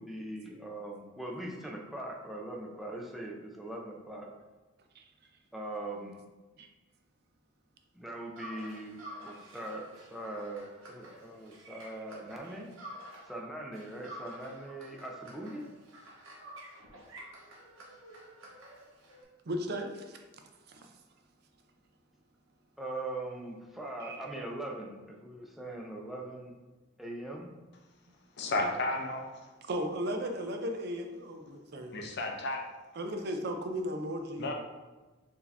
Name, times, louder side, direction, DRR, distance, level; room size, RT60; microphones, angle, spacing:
voice 1, 0.0-4.3 5.5-6.1 7.9-9.0 9.2-12.7 13.3-15.6 22.8-26.5 27.0-27.5, right 1 dB, ahead, -2 dB, 0.5 m, -41 dB
sound 1, 8.4-13.4 13.7-19.2, right 1 dB, 75° right, 1.0 m, -50 dB
voice 2, 19.5-20.2 20.7-20.9 24.0-24.3 29.7-32.0 32.9-34.5, equal, 50° right, 4 dB, 0.5 m, -36 dB
voice 3, 28.4-29.5 31.9-32.6 34.4-34.5, left 2 dB, 55° left, 2 dB, 0.6 m, -33 dB
4.6 x 2.8 x 3.3 m, 1.2 s
head